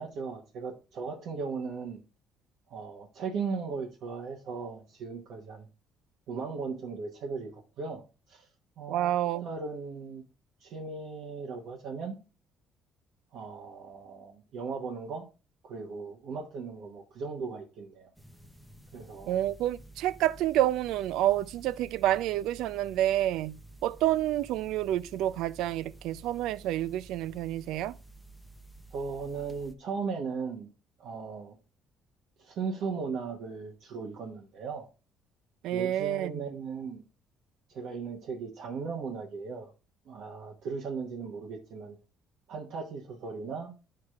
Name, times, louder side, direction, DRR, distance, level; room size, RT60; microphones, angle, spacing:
voice 1, 0.0-2.0 2.7-5.7 6.3-7.5 7.8-8.0 8.3-8.5 8.8-9.1 9.4-10.2 10.6-12.2 13.3-15.2 15.6-18.1 18.9-19.4 28.9-30.7 31.0-31.5 32.4-34.9 35.7-37.0 37.7-39.7 40.1-42.0 42.5-43.7, right 5 dB, 55° right, 1.0 m, -37 dB
voice 2, 8.9-9.5 19.3-28.0 35.6-36.4, right 13 dB, 75° right, 0.3 m, -29 dB
sound 1, 18.1-29.7, right 2 dB, ahead, 0.6 m, -51 dB
11.5 x 4.7 x 2.4 m
cardioid pair, 175°, 0 cm